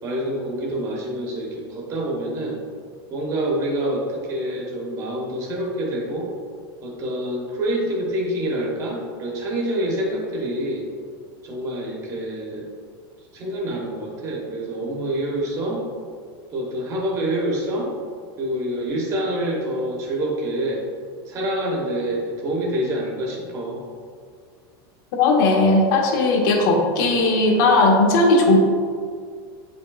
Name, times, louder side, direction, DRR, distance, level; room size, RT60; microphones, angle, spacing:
voice 1, 0.0-2.6 3.1-6.3 6.8-10.8 11.4-12.7 13.3-15.8 16.5-17.9 18.4-20.8 21.3-23.8, right 1 dB, 25° right, -2 dB, 1.1 m, -26 dB
voice 2, 25.2-28.6, left 2 dB, 50° left, 1 dB, 1.0 m, -17 dB
8.2 x 5.3 x 2.3 m, 2.1 s
supercardioid pair, 165°, 12 cm